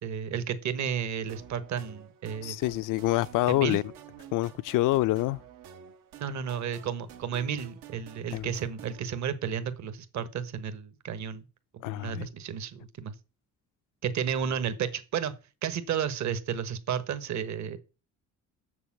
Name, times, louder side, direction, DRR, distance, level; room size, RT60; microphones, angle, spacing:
voice 1, 0.0-2.6 3.5-3.8 6.2-11.4 11.8-13.1 14.0-15.3 15.6-17.8, right 8 dB, 60° right, 1.4 m, -32 dB
sound 1, 1.3-9.0, right 8 dB, 85° right, 1.4 m, -50 dB
voice 2, 2.4-3.8 4.3-5.4 8.3-8.5 11.8-12.3, left 17 dB, 75° left, 0.5 m, -26 dB
7.2 x 6.9 x 7.3 m
cardioid pair, 100°, 32 cm